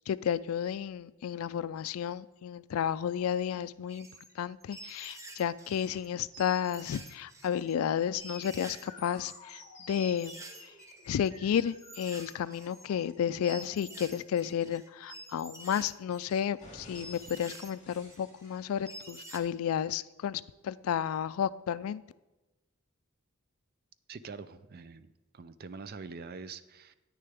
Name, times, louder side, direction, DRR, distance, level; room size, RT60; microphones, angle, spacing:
voice 1, 0.1-4.1 4.4-10.4 11.1-22.0, left 9 dB, 75° left, 18 dB, 0.3 m, -32 dB
sound 1, 3.9-4.3 4.6-6.1 6.3-7.7 8.2-8.9 9.1-19.4, right 1 dB, 15° right, 0.8 m, -49 dB
sound 2, 8.1-16.1 16.6-19.1, left 2 dB, 35° left, 2.8 m, -53 dB
voice 2, 24.1-25.1 25.3-26.9, right 4 dB, 45° right, 13 dB, 0.4 m, -44 dB
9.8 x 9.4 x 3.5 m, 1.1 s
head